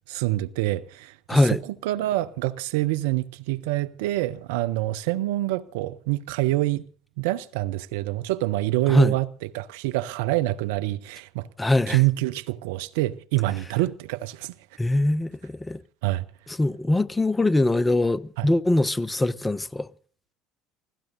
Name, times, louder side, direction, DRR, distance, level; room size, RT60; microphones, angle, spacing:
voice 1, 0.1-6.8 7.2-9.3 9.5-11.5 11.9-14.5 16.0-16.2 18.4-18.5, right 17 dB, 70° right, 0.6 m, -26 dB
voice 2, 1.3-1.6 8.9-9.1 11.6-12.0 14.8-15.8 16.6-19.9, left 2 dB, 15° left, 0.6 m, -22 dB
28.5 x 16.5 x 2.7 m
figure-of-eight pair, 60°, 0 cm